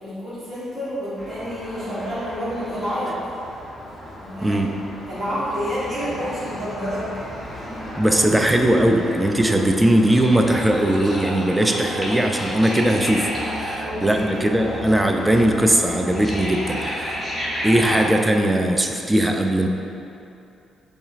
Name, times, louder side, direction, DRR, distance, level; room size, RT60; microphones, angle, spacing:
voice 1, 0.0-3.2 4.2-4.6 5.1-7.3 13.8-14.8, equal, 35° right, -9 dB, 1.4 m, -29 dB
sound 1, 1.2-18.1, equal, 10° left, 1.0 m, -32 dB
voice 2, 4.4-4.8 8.0-17.3 17.6-19.7, right 1 dB, 10° right, 3 dB, 0.3 m, -19 dB
4.9 x 3.1 x 2.5 m, 2.7 s
cardioid pair, 90°, 0 cm